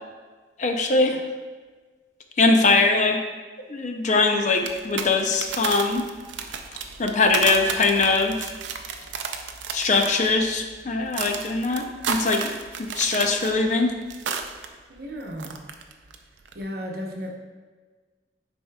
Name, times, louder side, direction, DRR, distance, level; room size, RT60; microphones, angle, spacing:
voice 1, 0.6-1.2 2.4-3.2 3.7-6.0 7.0-8.5 9.7-12.5 12.8-13.9, left 3 dB, 40° left, 4 dB, 0.5 m, -21 dB
sound 1, 4.5-14.7 14.9-16.1 16.4-16.6, right 6 dB, 90° right, 0.5 m, -33 dB
voice 2, 14.9-15.6 16.5-17.3, equal, 55° right, 1 dB, 0.8 m, -34 dB
9.7 x 4.3 x 2.3 m, 1.4 s
head